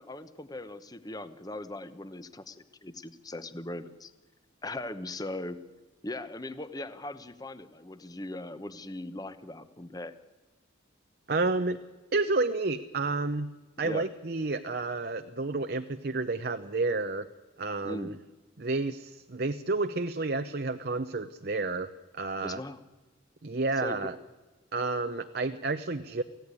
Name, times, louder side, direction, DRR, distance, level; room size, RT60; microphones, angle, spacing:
voice 1, 0.0-4.1 4.6-5.6 6.0-10.1 13.8-14.1 17.8-18.2 22.4-22.8 23.8-24.1, left 1 dB, 20° left, 12 dB, 1.0 m, -39 dB
voice 2, 11.3-11.8 12.1-13.5 13.8-17.3 17.6-18.2 18.6-22.6 23.4-24.1 24.7-26.2, right 3 dB, 50° right, 8 dB, 0.7 m, -30 dB
24.5 x 16.5 x 9.7 m, 1.3 s
head